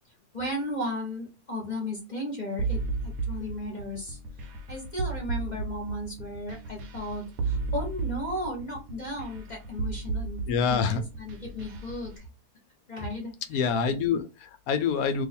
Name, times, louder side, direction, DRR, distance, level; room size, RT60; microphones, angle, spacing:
voice 1, 0.3-12.2 12.9-13.6, left 1 dB, 35° left, -1 dB, 0.9 m, -35 dB
sound 1, 2.6-12.1, right 4 dB, 70° right, 1.0 m, -33 dB
voice 2, 10.5-11.0 13.5-15.3, left 6 dB, 75° left, 8 dB, 1.0 m, -26 dB
2.7 x 2.4 x 4.1 m, 0.28 s
omnidirectional pair, 1.7 m